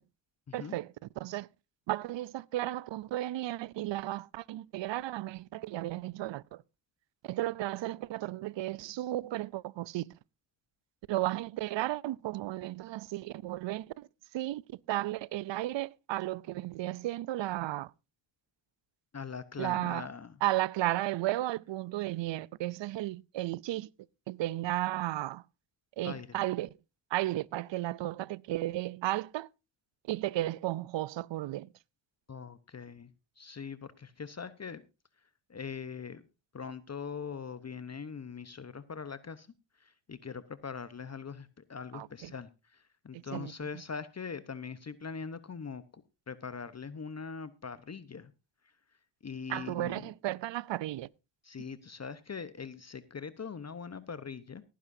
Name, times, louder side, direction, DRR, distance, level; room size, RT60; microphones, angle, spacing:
voice 1, 0.5-1.5 1.9-6.6 7.2-10.1 11.1-14.1 14.3-17.9 19.6-20.1 20.4-23.9 24.3-25.4 26.0-26.7 27.1-29.5 30.1-31.7 41.9-42.3 43.1-43.5 49.5-51.1, right 16 dB, 65° right, 0.6 m, -34 dB
voice 2, 19.1-20.3 26.0-26.3 32.3-33.1 33.4-34.8 35.5-36.2 36.5-39.5 39.8-48.3 49.2-50.1 51.4-54.6, left 6 dB, 35° left, 1.0 m, -42 dB
18.0 x 10.0 x 2.7 m
supercardioid pair, 55°, 47 cm